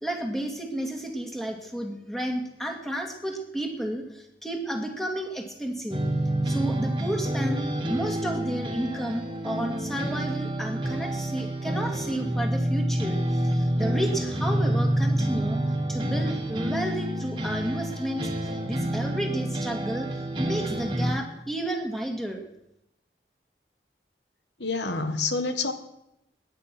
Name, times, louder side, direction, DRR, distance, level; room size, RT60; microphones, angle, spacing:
voice 1, 0.0-6.0 6.4-7.6 7.9-15.6 15.9-20.1 20.4-22.4, right 1 dB, ahead, 2 dB, 2.2 m, -32 dB
sound 1, 5.9-21.1, right 1 dB, 25° right, 1.7 m, -28 dB
voice 2, 24.6-25.7, left 3 dB, 85° left, 8 dB, 1.6 m, -27 dB
20.0 x 10.0 x 6.1 m, 0.84 s
head